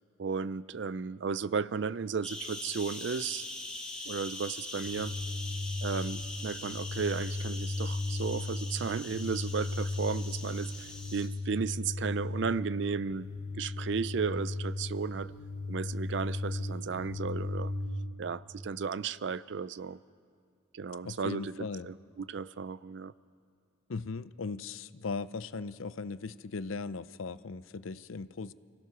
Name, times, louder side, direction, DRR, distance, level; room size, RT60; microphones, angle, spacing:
voice 1, 0.2-3.5 4.1-5.1 5.8-13.3 13.5-15.3 15.7-17.7 18.2-20.0 20.7-23.1, right 5 dB, 60° right, 18 dB, 0.4 m, -34 dB
sound 1, 2.2-11.3, left 2 dB, 5° left, 2.1 m, -42 dB
sound 2, 4.8-17.9, left 2 dB, 45° right, 5.9 m, -36 dB
voice 2, 21.0-21.9 23.9-28.5, left 4 dB, 85° left, 15 dB, 0.6 m, -38 dB
29.5 x 16.0 x 6.1 m, 2.2 s
head